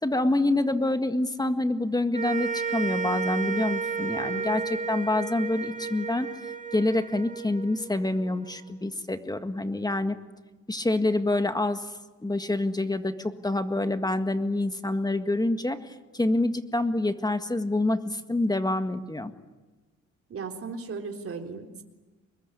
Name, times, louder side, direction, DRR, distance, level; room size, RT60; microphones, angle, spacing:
voice 1, 0.0-10.2 10.7-19.3, left 2 dB, 15° left, 8 dB, 1.8 m, -27 dB
sound 1, 2.1-8.6, right 5 dB, 25° right, 2.5 m, -32 dB
voice 2, 4.1-4.5 20.3-21.8, right 4 dB, 50° right, 3 dB, 3.8 m, -37 dB
25.0 x 21.0 x 9.8 m, 1.2 s
cardioid pair, 90°, 30 cm